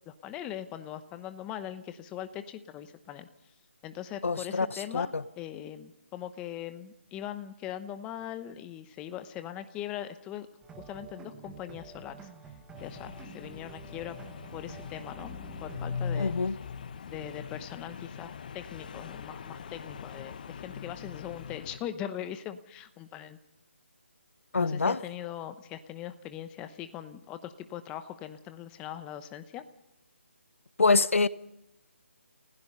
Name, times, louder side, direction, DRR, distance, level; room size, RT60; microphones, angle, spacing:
voice 1, 0.1-3.3 3.8-10.5 10.8-12.3 12.8-14.2 14.5-16.3 17.1-23.4 24.6-29.6, left 11 dB, 15° left, 0.9 m, -41 dB
voice 2, 4.2-4.7 4.9-5.1 16.2-16.5 24.5-25.0 30.8-31.3, left 4 dB, 75° left, 1.0 m, -24 dB
sound 1, 10.6-16.5, right 4 dB, 10° right, 1.5 m, -49 dB
sound 2, 12.8-21.8, left 6 dB, 40° left, 0.9 m, -40 dB
30.0 x 16.0 x 5.5 m
figure-of-eight pair, 160°, 7 cm